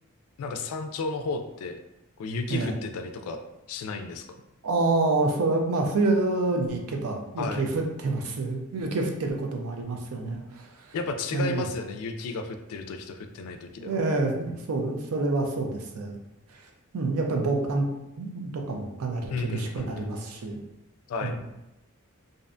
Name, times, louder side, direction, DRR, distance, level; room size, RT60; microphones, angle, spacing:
voice 1, 0.4-1.8 2.2-3.4 3.7-4.2 7.4-7.6 10.9-13.9 19.3-20.1 21.1-21.4, left 3 dB, 75° left, 7 dB, 0.3 m, -33 dB
voice 2, 4.6-11.0 11.3-11.7 13.8-16.2 16.5-16.6 16.9-17.9 18.2-20.6 21.2-21.4, right 3 dB, 70° right, 2 dB, 0.4 m, -27 dB
2.5 x 2.1 x 2.5 m, 0.90 s
head